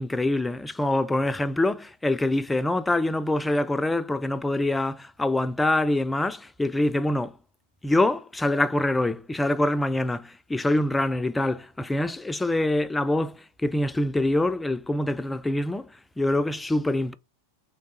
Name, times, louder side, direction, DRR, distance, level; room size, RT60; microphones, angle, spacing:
voice 1, 0.0-7.3 7.8-15.9 16.2-17.1, left 1 dB, 5° left, 0.3 m, -25 dB
3.3 x 3.3 x 4.1 m
figure-of-eight pair, 90°, 0 cm